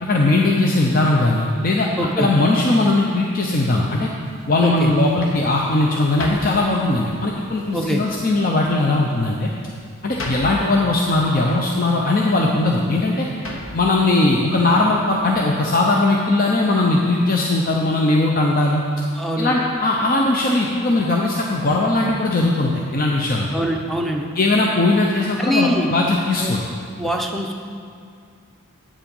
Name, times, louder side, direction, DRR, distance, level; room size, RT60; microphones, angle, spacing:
voice 1, 0.0-1.9 2.2-4.1 4.5-9.5 10.0-13.3 13.7-18.8 19.4-23.5 24.4-26.6, left 2 dB, 40° left, -1 dB, 0.6 m, -19 dB
voice 2, 2.0-2.3 4.6-4.9 7.7-8.0 19.1-19.5 23.5-24.3 25.4-25.9 26.4-26.5 27.0-27.6, equal, ahead, 1 dB, 0.6 m, -23 dB
sound 1, 4.2-15.4, left 1 dB, 70° left, 1.1 m, -38 dB
8.7 x 7.4 x 5.3 m, 2.2 s
head